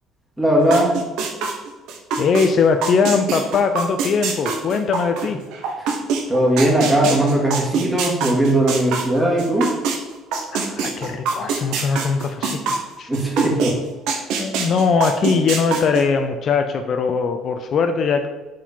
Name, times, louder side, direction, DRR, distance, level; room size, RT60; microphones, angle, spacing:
voice 1, 0.4-0.9 5.8-5.9 6.3-9.7 13.1-13.7, right 1 dB, 5° right, -3 dB, 2.2 m, -18 dB
sound 1, 0.7-2.5 2.8-10.0 10.3-13.7 14.1-16.0, right 5 dB, 75° right, 1.2 m, -23 dB
voice 2, 2.2-5.4 10.5-13.1 14.4-18.3, left 5 dB, 50° left, 7 dB, 0.5 m, -20 dB
4.8 x 4.4 x 5.5 m, 1.2 s
supercardioid pair, 90°, 0 cm